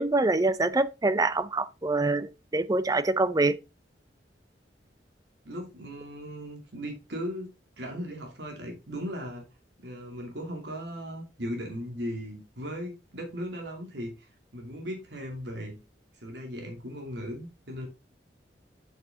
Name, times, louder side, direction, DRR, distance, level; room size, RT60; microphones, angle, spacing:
voice 1, 0.0-3.6, right 2 dB, 20° right, 0.5 m, -25 dB
voice 2, 5.4-7.5 7.8-9.5 9.8-14.3 14.5-15.8 16.2-17.9, equal, 75° right, 2.6 m, -37 dB
7.0 x 6.6 x 3.6 m
head